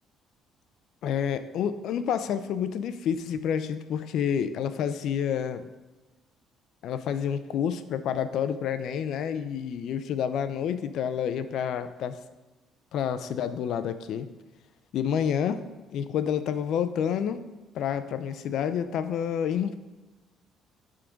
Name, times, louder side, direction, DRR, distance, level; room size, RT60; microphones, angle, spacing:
voice 1, 1.0-5.7 6.8-12.2 12.9-14.3 14.9-15.6 15.9-17.4 17.7-19.8, left 8 dB, 70° left, 11 dB, 0.5 m, -29 dB
10.5 x 3.8 x 5.1 m, 1.2 s
cardioid pair, 105°, 0 cm